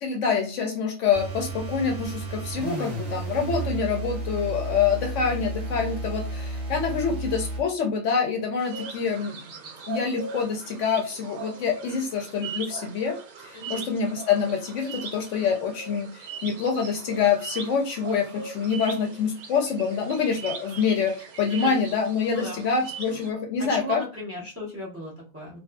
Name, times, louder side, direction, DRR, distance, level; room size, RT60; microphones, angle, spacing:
voice 1, 0.0-9.4 9.9-24.0, left 6 dB, 65° left, 2 dB, 0.8 m, -26 dB
sound 1, 1.1-7.7, right 2 dB, 50° right, 0.9 m, -32 dB
sound 2, 8.6-23.3, right 5 dB, 85° right, 1.1 m, -40 dB
voice 2, 13.5-13.9 21.5-21.8 22.3-22.6 23.6-25.6, equal, 20° right, -4 dB, 0.4 m, -36 dB
2.6 x 2.3 x 2.2 m, 0.33 s
omnidirectional pair, 1.5 m